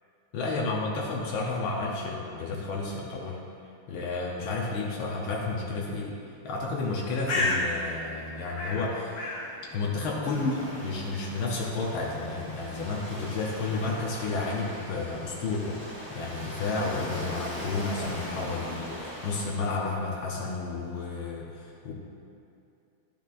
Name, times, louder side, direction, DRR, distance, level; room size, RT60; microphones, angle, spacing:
voice 1, 0.3-3.4 3.9-6.2 6.4-9.4 9.7-15.8 16.1-21.9, left 3 dB, 90° left, -3 dB, 1.7 m, -31 dB
Bird, 6.8-14.4, left 2 dB, 60° left, 1.4 m, -36 dB
Waves surf, 10.2-19.5, equal, 5° right, 1.5 m, -40 dB
12.0 x 7.0 x 2.5 m, 2.6 s
omnidirectional pair, 2.2 m